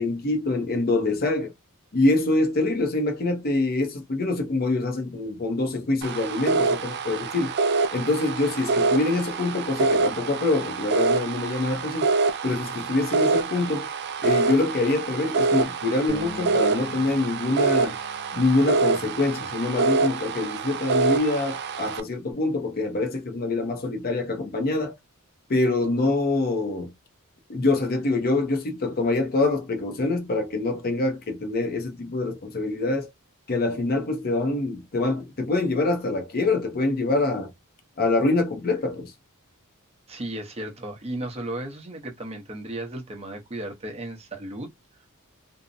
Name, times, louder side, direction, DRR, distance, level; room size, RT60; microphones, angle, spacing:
voice 1, 0.0-1.5 1.9-7.5 7.9-12.1 12.4-13.9 14.2-18.0 18.3-24.9 25.5-26.9 27.5-33.1 33.5-37.5 38.0-39.1, left 2 dB, 45° left, 0.6 m, -25 dB
sound 1, 6.0-22.0, right 4 dB, 50° right, 0.4 m, -26 dB
Bass guitar, 16.1-22.3, left 4 dB, 70° left, 0.9 m, -46 dB
voice 2, 40.1-44.7, right 1 dB, 30° right, 0.7 m, -35 dB
2.6 x 2.0 x 2.5 m
head